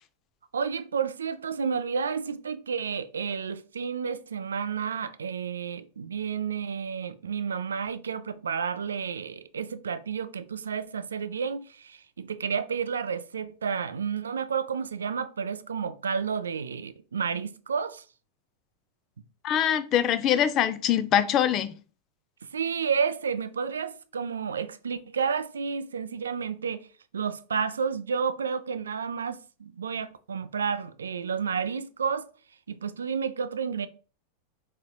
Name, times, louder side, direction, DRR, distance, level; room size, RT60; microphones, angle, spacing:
voice 1, 0.5-18.0 22.5-26.9 27.1-32.2 32.7-33.9, right 6 dB, 70° right, 0.3 m, -31 dB
voice 2, 19.4-21.7, left 10 dB, 35° left, 0.4 m, -23 dB
4.2 x 4.0 x 2.2 m
figure-of-eight pair, 90°, 0 cm